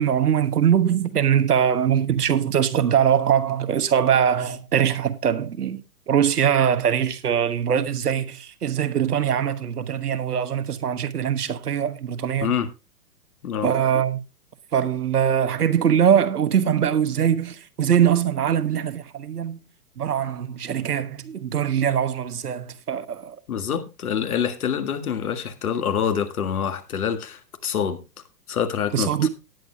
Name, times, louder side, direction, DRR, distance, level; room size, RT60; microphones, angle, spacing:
voice 1, 0.0-12.5 13.6-14.2 14.7-19.6 20.0-23.4 28.9-29.3, right 8 dB, 70° right, 1.3 m, -22 dB
voice 2, 23.5-28.0 28.5-29.3, left 8 dB, 65° left, 1.8 m, -26 dB
18.0 x 9.1 x 2.2 m
figure-of-eight pair, 115°, 48 cm